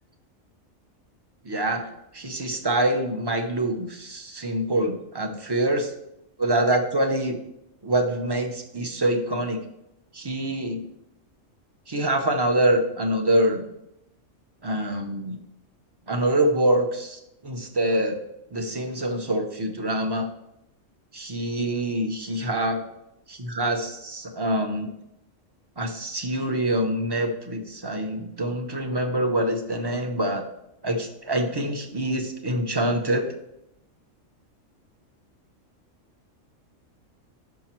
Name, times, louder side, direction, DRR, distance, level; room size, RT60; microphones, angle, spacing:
voice 1, 1.4-5.8 6.4-7.4 7.8-9.6 10.1-10.8 11.9-13.7 14.6-15.4 16.1-18.2 18.5-20.3 21.1-22.8 23.3-24.9 25.8-30.4 30.8-33.2, right 1 dB, 25° right, 4 dB, 0.7 m, -25 dB
6.0 x 5.7 x 4.4 m, 0.82 s
omnidirectional pair, 1.3 m